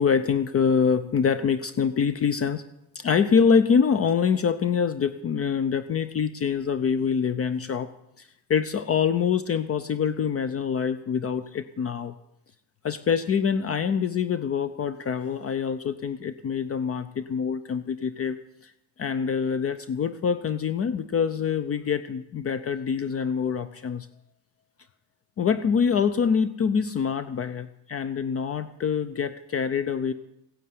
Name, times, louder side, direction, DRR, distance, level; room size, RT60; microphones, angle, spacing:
voice 1, 0.0-2.6 2.9-7.9 8.2-12.1 12.8-18.4 18.6-18.7 19.0-24.1 25.4-30.1, left 6 dB, 35° left, 13 dB, 0.7 m, -25 dB
15.5 x 9.9 x 9.4 m, 0.83 s
cardioid pair, 155°, 41 cm